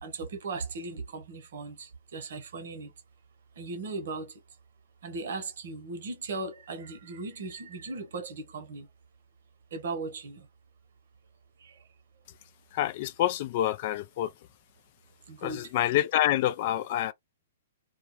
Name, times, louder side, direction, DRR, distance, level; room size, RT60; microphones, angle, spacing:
voice 1, 0.0-2.9 3.6-4.3 5.0-8.9 9.7-10.5 11.6-11.7 15.3-15.7, right 3 dB, 65° right, 0.9 m, -37 dB
voice 2, 12.7-14.3 15.4-17.1, left 13 dB, 50° left, 0.3 m, -27 dB
2.3 x 2.2 x 3.0 m
hypercardioid pair, 120°, 0 cm